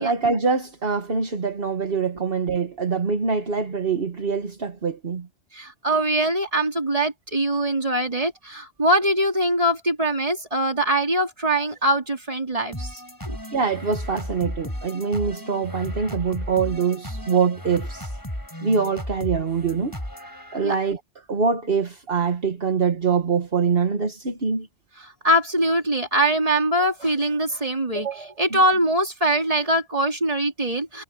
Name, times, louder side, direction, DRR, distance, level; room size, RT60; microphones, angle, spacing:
voice 1, 0.0-5.3 13.5-18.1 18.6-19.9 20.5-21.0 21.3-24.7 28.5-28.6, right 5 dB, 60° right, 1.7 m, -24 dB
voice 2, 5.5-13.0 13.3-13.4 20.6-20.7 25.0-31.0, right 1 dB, 35° right, 3.3 m, -23 dB
sound 1, 12.7-20.9, equal, 20° left, 6.6 m, -35 dB
omnidirectional pair, 1.1 m